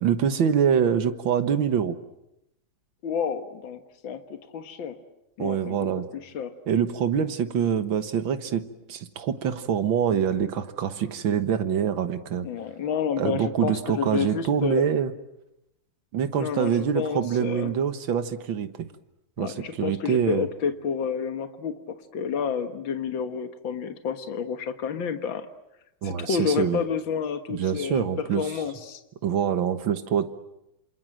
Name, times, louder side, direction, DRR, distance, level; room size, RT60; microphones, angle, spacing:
voice 1, 0.0-2.0 5.4-6.1 6.7-8.6 8.9-12.5 13.2-15.1 16.1-18.9 19.4-20.5 26.0-26.8 27.5-28.5 29.2-30.3, right 8 dB, 80° right, 10 dB, 2.1 m, -25 dB
voice 2, 3.0-5.0 5.4-5.9 6.1-6.5 12.4-14.8 16.3-17.7 19.4-25.5 26.0-28.1 28.4-29.0, left 6 dB, 75° left, 8 dB, 2.2 m, -30 dB
27.5 x 27.5 x 7.7 m, 0.86 s
omnidirectional pair, 2.1 m